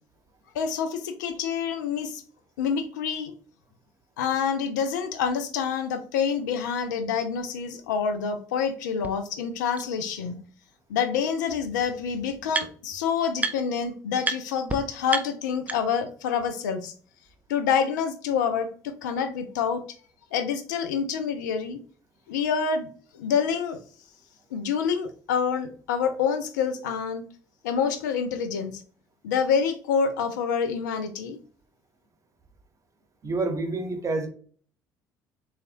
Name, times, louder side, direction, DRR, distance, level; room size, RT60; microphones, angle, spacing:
voice 1, 0.5-2.2 2.6-3.3 4.2-10.4 10.9-16.9 17.5-19.8 20.3-21.8 22.3-22.9 23.1-23.8 24.5-27.2 27.6-28.8 29.2-31.4, left 6 dB, 75° left, 9 dB, 0.4 m, -27 dB
sound 1, 9.0-9.1 9.8-9.9 11.1-11.2 11.5-13.0 13.4-13.8 14.2-14.4 14.7-14.8 15.1-16.1, right 3 dB, 15° right, 0.4 m, -31 dB
voice 2, 33.2-34.3, right 3 dB, 35° right, 5 dB, 0.9 m, -28 dB
4.1 x 2.4 x 2.5 m, 0.43 s
hypercardioid pair, 55°, 10 cm